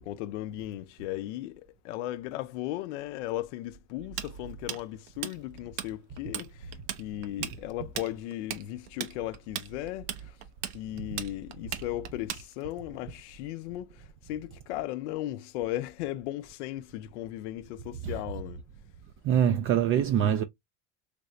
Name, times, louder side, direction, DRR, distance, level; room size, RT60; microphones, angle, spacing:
voice 1, 0.0-6.5 7.0-10.3 10.7-14.0 14.3-18.6, left 14 dB, 75° left, 0.5 m, -36 dB
Tools, 4.2-5.9 6.2-6.5 6.7-12.8, right 11 dB, 75° right, 0.8 m, -36 dB
voice 2, 19.2-20.4, right 9 dB, 35° right, 0.4 m, -24 dB
3.3 x 3.1 x 2.5 m
supercardioid pair, 100°, 36 cm